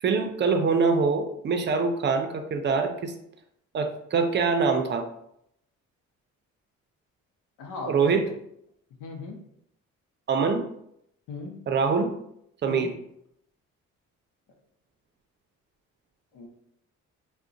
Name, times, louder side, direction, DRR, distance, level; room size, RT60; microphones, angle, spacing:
voice 1, 0.0-3.1 3.7-5.1 7.9-8.3 10.3-10.6 11.7-12.1 12.6-12.9, right 5 dB, 35° right, 5 dB, 0.5 m, -24 dB
voice 2, 7.6-8.2 9.0-9.4 11.3-11.6 12.7-12.9 16.3-16.5, left 3 dB, 85° left, 3 dB, 0.7 m, -37 dB
2.4 x 2.2 x 3.8 m, 0.74 s
cardioid pair, 90°, 30 cm